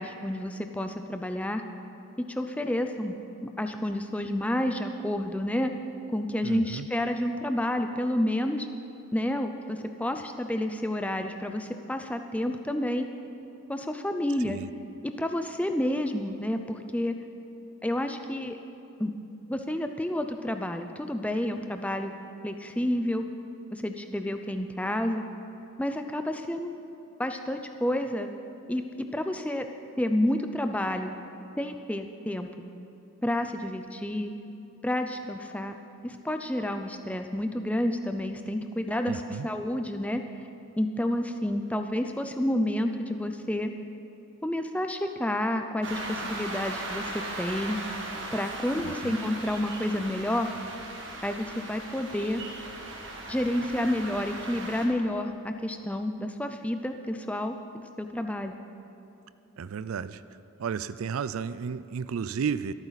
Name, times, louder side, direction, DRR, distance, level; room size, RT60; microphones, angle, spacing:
voice 1, 0.0-1.6 2.3-3.2 3.4-5.7 6.1-8.7 9.1-13.1 13.7-14.6 15.2-17.1 17.8-18.6 19.0-19.1 19.5-22.1 22.4-23.2 23.7-25.2 25.8-26.8 27.2-28.3 28.7-28.8 29.1-29.7 30.0-31.2 31.6-32.5 33.2-34.3 34.8-35.7 36.0-40.2 40.8-43.7 44.4-47.8 48.3-50.5 51.2-52.4 53.3-58.6, left 1 dB, 5° left, 6 dB, 0.5 m, -30 dB
voice 2, 6.4-6.9 14.4-14.7 39.1-39.5 48.8-49.2 59.6-60.2 60.6-62.7, right 6 dB, 75° right, 14 dB, 0.4 m, -33 dB
sound 1, 45.8-54.9, right 2 dB, 60° right, 1.9 m, -38 dB
26.0 x 9.0 x 4.1 m, 3.0 s
head